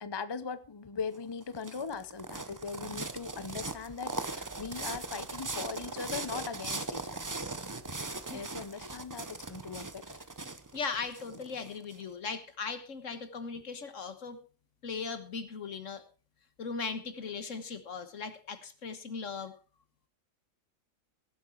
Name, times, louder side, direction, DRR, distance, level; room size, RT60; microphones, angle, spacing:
voice 1, 0.0-7.1 7.8-7.9 8.3-10.2, left 5 dB, 30° left, 13 dB, 0.5 m, -40 dB
sound 1, 1.1-12.0, right 3 dB, 20° right, 0.5 m, -39 dB
voice 2, 10.7-14.4 14.8-16.0 16.6-19.5, left 5 dB, 65° left, 10 dB, 1.7 m, -38 dB
17.5 x 8.0 x 4.6 m, 0.37 s
omnidirectional pair, 1.4 m